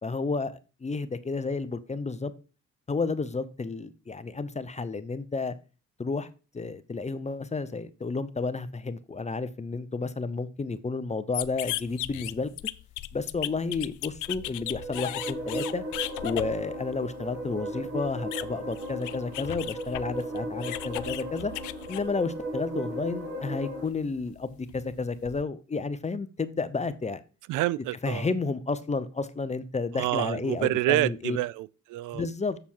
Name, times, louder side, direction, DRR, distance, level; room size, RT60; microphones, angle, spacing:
voice 1, 0.0-2.3 2.9-5.5 6.0-6.3 6.5-12.5 13.1-15.8 16.2-21.5 21.9-27.2 28.0-31.4 32.1-32.6, left 4 dB, 25° left, 0.7 m, -31 dB
sound 1, 11.3-22.7 23.0-25.4, left 16 dB, 80° left, 0.5 m, -37 dB
sound 2, 14.4-23.8, right 1 dB, 60° right, 3.0 m, -36 dB
voice 2, 27.5-28.3 30.0-32.2, right 17 dB, 85° right, 0.5 m, -28 dB
7.2 x 6.9 x 4.5 m
cardioid pair, 90°, 30 cm